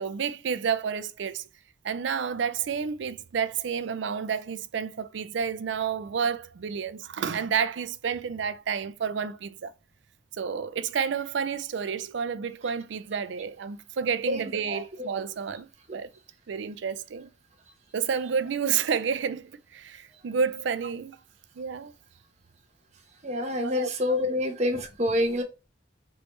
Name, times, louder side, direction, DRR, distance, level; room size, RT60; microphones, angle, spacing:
voice 1, 0.0-1.4 1.8-9.7 10.3-15.7 15.9-16.1 16.5-17.3 17.9-21.2 21.6-21.9 23.6-23.9, right 6 dB, 70° right, 0.4 m, -30 dB
voice 2, 14.3-15.1 23.2-25.4, left 1 dB, 35° right, 0.9 m, -27 dB
4.7 x 3.2 x 3.1 m
head